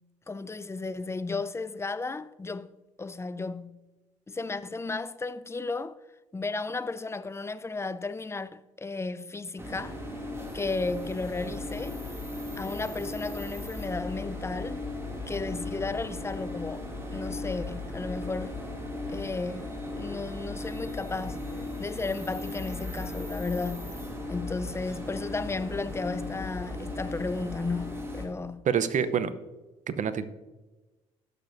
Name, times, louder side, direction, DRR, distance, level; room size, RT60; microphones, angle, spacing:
voice 1, 0.3-2.7 3.0-3.8 4.3-6.0 6.3-10.0 10.5-12.0 12.6-14.8 15.3-18.5 19.1-24.0 24.3-28.7, left 3 dB, 15° left, 0.6 m, -34 dB
sound 1, 9.6-28.3, left 2 dB, 15° right, 2.5 m, -37 dB
voice 2, 28.7-29.3 29.9-30.3, right 7 dB, 55° right, 0.8 m, -26 dB
16.5 x 6.8 x 2.6 m
hypercardioid pair, 60°, 15 cm